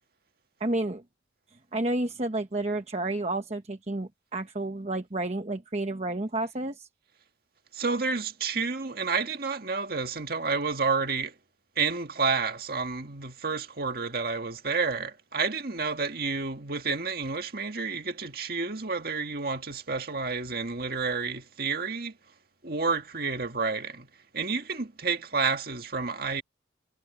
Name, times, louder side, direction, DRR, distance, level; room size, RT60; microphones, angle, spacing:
voice 1, 0.6-1.0 1.7-6.9, right 2 dB, 35° right, 1.0 m, -30 dB
voice 2, 7.7-11.3 11.8-22.1 22.6-24.1 24.3-26.4, right 4 dB, 55° right, 1.9 m, -30 dB
head